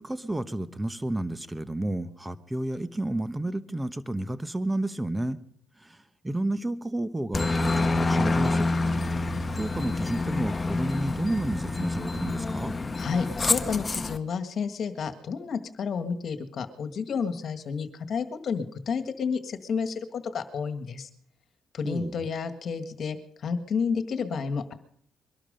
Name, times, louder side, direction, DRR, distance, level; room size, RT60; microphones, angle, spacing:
voice 1, 0.0-5.4 5.8-8.7 9.5-12.8 21.8-22.2, right 1 dB, 10° right, 13 dB, 1.1 m, -31 dB
Aircraft, 7.3-14.2, left 2 dB, 25° left, 1.0 m, -27 dB
voice 2, 13.0-21.1 21.7-24.7, left 5 dB, 55° left, 9 dB, 1.8 m, -31 dB
22.5 x 12.0 x 5.2 m, 0.64 s
cardioid pair, 90°, 0 cm